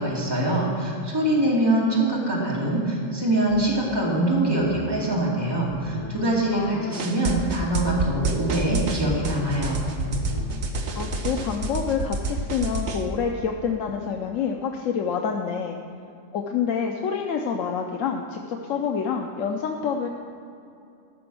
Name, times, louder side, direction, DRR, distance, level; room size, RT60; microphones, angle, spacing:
voice 1, 0.0-9.8, right 1 dB, 20° right, -5 dB, 2.4 m, -24 dB
sound 1, 3.5-4.0 4.6-5.1 5.7-6.2 7.8-8.4 8.9-9.5 10.0-10.5, left 1 dB, 35° left, 2.8 m, -37 dB
voice 2, 6.5-7.1 10.9-15.8 16.3-20.1, left 6 dB, 85° left, 2 dB, 1.1 m, -27 dB
sound 2, 6.9-13.0, right 3 dB, 65° right, 1.2 m, -28 dB
14.0 x 6.0 x 6.2 m, 2.6 s
omnidirectional pair, 1.3 m